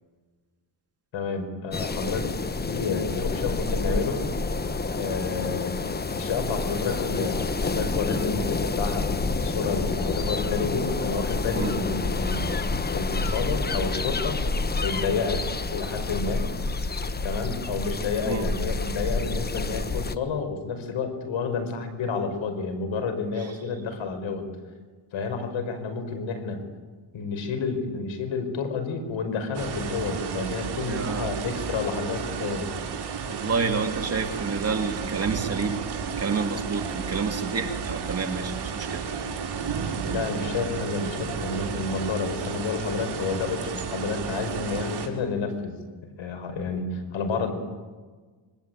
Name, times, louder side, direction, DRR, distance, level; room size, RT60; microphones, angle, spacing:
voice 1, 1.1-4.2 5.0-12.4 12.9-14.5 14.8-15.4 15.7-16.4 17.2-24.5 25.1-26.6 27.1-32.7 40.0-47.5, left 4 dB, 70° left, 7 dB, 5.5 m, -30 dB
sound 1, 1.7-20.2, left 3 dB, 20° left, 1.1 m, -28 dB
sound 2, 29.5-45.1, right 6 dB, 55° right, 4.7 m, -32 dB
voice 2, 30.9-31.3 33.3-35.8 36.2-39.0, right 4 dB, 30° right, 4 dB, 2.9 m, -29 dB
26.5 x 24.0 x 9.3 m, 1.4 s
cardioid pair, 125°, 48 cm